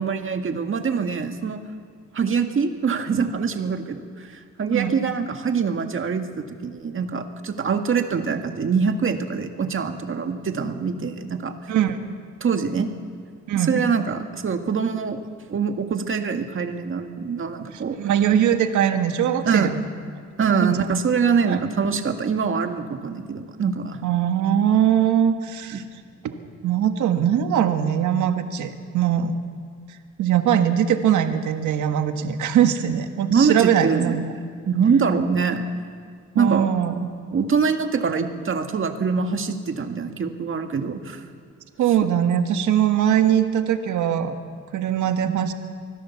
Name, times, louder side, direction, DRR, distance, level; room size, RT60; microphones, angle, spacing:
voice 1, 0.0-1.6 2.1-11.5 12.4-12.9 13.5-15.2 15.5-18.0 19.4-19.7 20.4-24.0 25.7-25.8 33.3-34.2 34.6-35.6 36.4-36.7 37.3-41.3, right 5 dB, 45° right, 6 dB, 1.9 m, -24 dB
voice 2, 4.7-5.0 11.7-12.0 13.5-13.7 18.0-19.8 20.6-20.8 21.5-21.6 24.0-25.8 26.2-29.3 30.2-34.3 36.3-37.1 41.8-44.3 44.7-45.5, right 9 dB, 75° right, 7 dB, 1.6 m, -21 dB
25.0 x 16.0 x 7.2 m, 2.1 s
cardioid pair, 90°, 30 cm